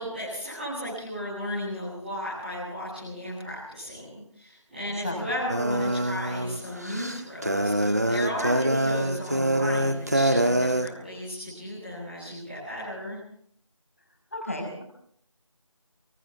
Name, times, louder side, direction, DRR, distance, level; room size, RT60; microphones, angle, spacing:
voice 1, 0.0-13.2, equal, ahead, -21 dB, 4.3 m, -35 dB
voice 2, 5.0-5.4 14.3-14.8, left 1 dB, 25° left, 1 dB, 6.0 m, -33 dB
sound 1, 5.5-10.9, right 1 dB, 30° right, 1.3 m, -25 dB
29.5 x 24.0 x 3.6 m, 0.64 s
figure-of-eight pair, 175°, 17 cm